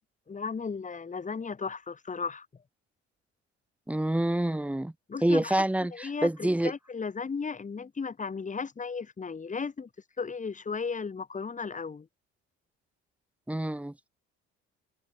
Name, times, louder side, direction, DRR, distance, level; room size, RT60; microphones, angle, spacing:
voice 1, 0.3-2.5 5.1-5.5 5.9-9.9 10.2-12.1, left 5 dB, 25° left, 1.1 m, -35 dB
voice 2, 3.9-4.9 5.2-6.7 13.5-14.1, right 1 dB, 5° right, 0.8 m, -27 dB
open air
hypercardioid pair, 55°, 33 cm